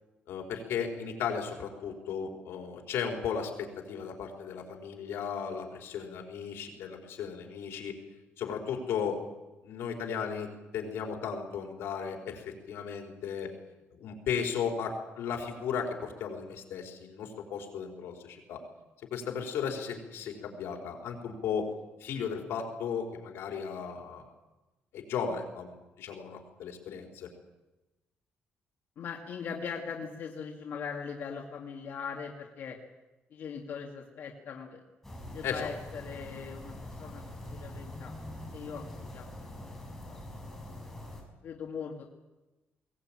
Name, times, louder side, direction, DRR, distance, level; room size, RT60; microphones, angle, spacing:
voice 1, 0.3-7.9 8.4-9.2 9.6-10.5 10.7-13.5 14.0-18.6 19.1-21.7 22.0-24.3 24.9-27.3 35.4-35.7, left 6 dB, 90° left, 2 dB, 4.5 m, -35 dB
voice 2, 29.0-32.8 33.3-34.8 35.3-38.1 38.5-38.8 39.1-39.3 39.6-40.2 40.7-40.8 41.4-42.0, left 6 dB, 60° left, 0 dB, 2.4 m, -40 dB
sound 1, 35.0-41.2, left 1 dB, 10° left, 5.5 m, -44 dB
21.5 x 19.0 x 9.0 m, 1.1 s
cardioid pair, 145°, 4 cm